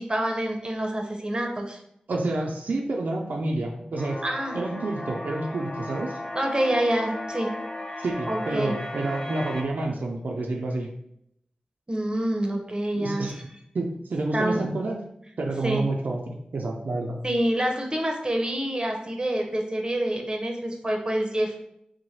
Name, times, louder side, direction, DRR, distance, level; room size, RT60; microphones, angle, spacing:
voice 1, 0.0-1.8 4.2-4.6 6.3-7.5 8.0-8.7 11.9-13.4 14.3-14.6 15.6-15.8 17.2-21.5, right 1 dB, 30° right, 2 dB, 0.7 m, -27 dB
voice 2, 2.1-4.2 4.5-6.2 8.0-10.9 12.9-13.3 13.7-15.0 15.4-16.2 16.5-17.2, right 2 dB, 80° right, 0 dB, 0.4 m, -29 dB
sound 1, 4.0-9.6, left 1 dB, 25° left, 0.5 m, -35 dB
3.1 x 2.1 x 4.1 m, 0.75 s
cardioid pair, 45°, 3 cm